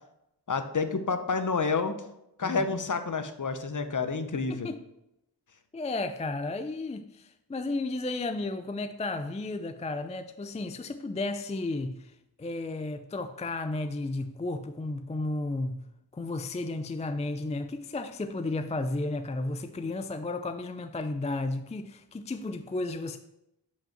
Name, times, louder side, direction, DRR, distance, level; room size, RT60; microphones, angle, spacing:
voice 1, 0.5-2.0 2.4-4.7, left 4 dB, 45° left, 0.8 m, -29 dB
voice 2, 2.4-2.8 4.3-4.8 5.7-15.8 16.1-23.2, left 2 dB, 15° left, 0.3 m, -33 dB
5.3 x 5.1 x 5.8 m
wide cardioid pair, 60°, 43 cm